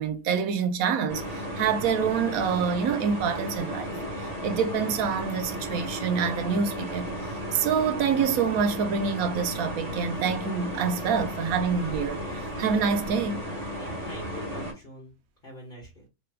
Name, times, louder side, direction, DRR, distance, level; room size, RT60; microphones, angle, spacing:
voice 1, 0.0-4.0 4.4-7.1 7.5-13.5, right 6 dB, 90° right, 1.0 m, -26 dB
sound 1, 1.1-14.7, equal, 30° right, 1.2 m, -34 dB
voice 2, 13.8-15.1 15.4-16.1, equal, 40° left, 1.1 m, -43 dB
3.2 x 2.2 x 3.2 m
omnidirectional pair, 1.4 m